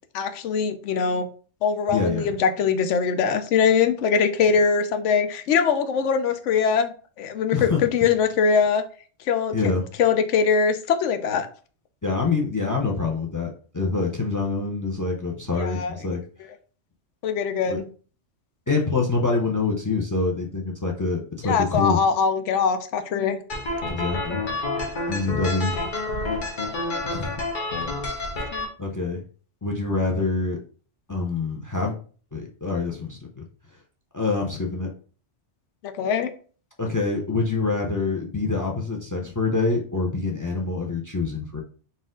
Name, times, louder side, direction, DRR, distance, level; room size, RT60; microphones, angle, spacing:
voice 1, 0.1-1.3 1.6-8.8 9.3-9.6 10.0-11.5 15.6-15.9 17.2-17.9 21.5-23.4 25.8-25.9 28.5-28.7 36.0-36.3, left 6 dB, 85° left, 8 dB, 0.9 m, -22 dB
voice 2, 1.9-2.3 7.5-7.9 9.5-9.9 12.0-16.2 17.7-17.8 18.7-22.0 23.9-24.5 25.1-25.8 27.0-27.3 28.8-29.2 29.6-30.6 31.1-31.9 32.3-33.4 34.1-34.9 36.8-41.6, left 3 dB, 30° left, 2 dB, 0.4 m, -26 dB
sound 1, 23.5-28.6, left 2 dB, 45° left, 0.9 m, -29 dB
4.1 x 2.5 x 3.7 m, 0.41 s
omnidirectional pair, 1.2 m